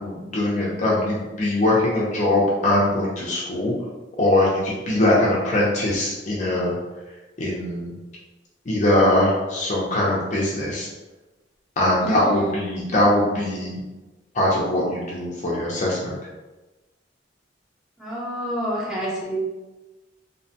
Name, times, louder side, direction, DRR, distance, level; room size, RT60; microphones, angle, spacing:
voice 1, 0.0-3.7 4.2-6.7 7.4-7.9 8.7-10.9 11.8-13.8 14.3-16.2, left 1 dB, 45° left, -4 dB, 0.5 m, -21 dB
voice 2, 12.0-12.5 18.0-19.4, equal, ahead, -8 dB, 0.8 m, -29 dB
2.8 x 2.1 x 2.7 m, 1.1 s
head